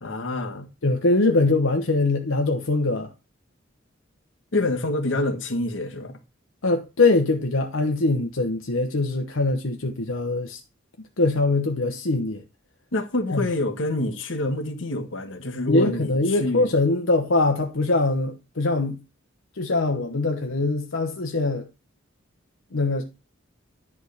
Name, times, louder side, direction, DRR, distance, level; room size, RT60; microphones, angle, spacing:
voice 1, 0.0-0.7 4.5-6.1 12.9-16.7, left 2 dB, 70° left, 1.4 m, -27 dB
voice 2, 0.8-3.1 6.6-10.6 11.2-12.4 13.3-13.5 15.7-19.0 19.6-21.7 22.7-23.0, left 2 dB, 90° left, 1.0 m, -22 dB
11.0 x 3.6 x 6.5 m
head